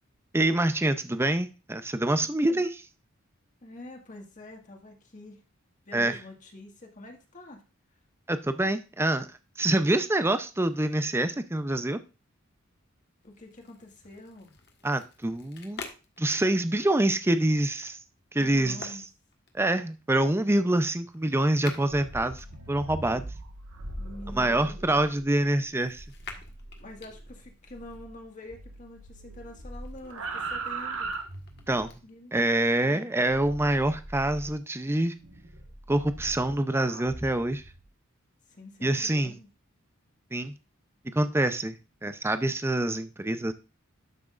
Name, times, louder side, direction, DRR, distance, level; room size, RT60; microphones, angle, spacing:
voice 1, 0.3-2.7 5.9-6.2 8.3-9.3 9.6-12.0 14.8-15.8 16.2-18.0 18.3-18.8 19.5-23.3 24.4-26.0 31.7-31.9 32.3-35.1 35.9-37.6 38.8-39.3 40.3-40.5 41.1-41.8 42.0-43.5, right 1 dB, 10° right, 10 dB, 0.6 m, -26 dB
voice 2, 2.2-2.6 3.6-5.4 5.9-7.6 13.2-14.5 18.4-19.0 24.0-24.8 26.8-31.1 32.0-33.0 38.4-39.5, left 1 dB, 40° left, 2 dB, 1.8 m, -46 dB
sound 1, 13.2-23.2 23.9-28.0 28.6-32.0, left 5 dB, 55° left, 1.5 m, -50 dB
sound 2, 21.8-28.2 28.5-31.9 33.3-34.5 35.2-37.8, right 3 dB, 85° right, 1.6 m, -40 dB
12.0 x 6.1 x 2.5 m, 0.31 s
head